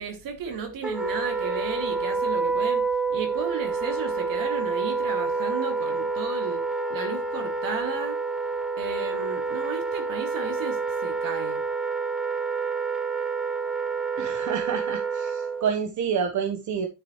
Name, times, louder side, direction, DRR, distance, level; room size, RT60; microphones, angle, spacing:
voice 1, 0.0-2.8 3.1-6.6 6.9-8.2 8.8-11.6, right 5 dB, 75° right, 2.6 m, -34 dB
Wind instrument woodwind instrument, 0.8-15.7, right 4 dB, ahead, 1.0 m, -28 dB
voice 2, 14.2-16.9, right 7 dB, 55° right, 1.2 m, -28 dB
9.7 x 6.8 x 3.2 m
supercardioid pair, 70°, 34 cm